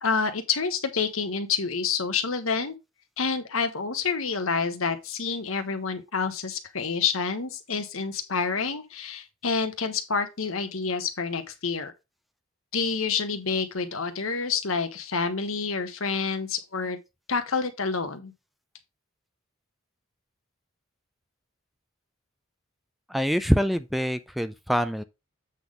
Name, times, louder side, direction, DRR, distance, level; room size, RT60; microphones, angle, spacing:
voice 1, 0.0-2.7 3.2-11.9 12.7-17.0 17.3-18.3, left 5 dB, 80° left, 1.3 m, -28 dB
voice 2, 23.1-25.0, equal, ahead, 0.4 m, -25 dB
8.3 x 3.9 x 5.0 m
head